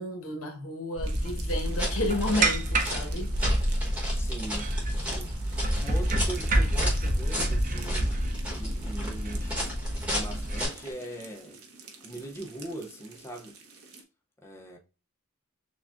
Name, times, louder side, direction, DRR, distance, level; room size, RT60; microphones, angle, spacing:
voice 1, 0.0-3.3, left 1 dB, 75° left, 1.2 m, -32 dB
sound 1, 1.0-10.6, right 1 dB, 40° right, 0.6 m, -28 dB
sound 2, 1.0-14.0, right 4 dB, 80° right, 0.9 m, -48 dB
sound 3, 1.6-10.9, equal, 5° right, 1.1 m, -36 dB
voice 2, 4.1-8.2 8.5-9.7 10.1-11.6 12.0-13.6 14.4-14.8, right 1 dB, 10° left, 0.5 m, -41 dB
6.7 x 2.3 x 2.4 m
head